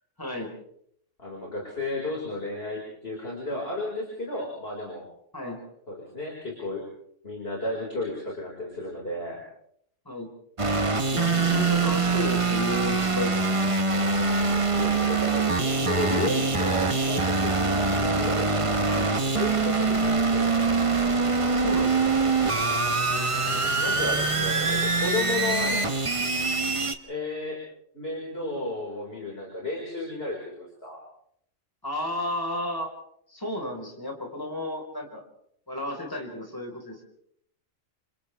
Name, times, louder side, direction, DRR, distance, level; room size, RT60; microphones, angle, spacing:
voice 1, 0.2-0.5 5.3-5.6 10.0-10.3 11.1-13.5 18.0-18.2 18.9-19.2 21.5-22.2 25.6-25.8 31.8-32.9 33.3-35.2 35.7-37.0, left 1 dB, 15° left, 1 dB, 4.6 m, -33 dB
voice 2, 1.2-5.0 5.9-6.9 7.2-9.4 11.3-11.9 14.7-18.9 19.2-20.5 23.8-25.7 27.1-27.6 27.9-31.0, left 2 dB, 50° left, -2 dB, 5.4 m, -33 dB
sound 1, 10.6-26.9, right 3 dB, 25° right, 1.1 m, -24 dB
30.0 x 26.5 x 3.5 m, 0.69 s
omnidirectional pair, 1.4 m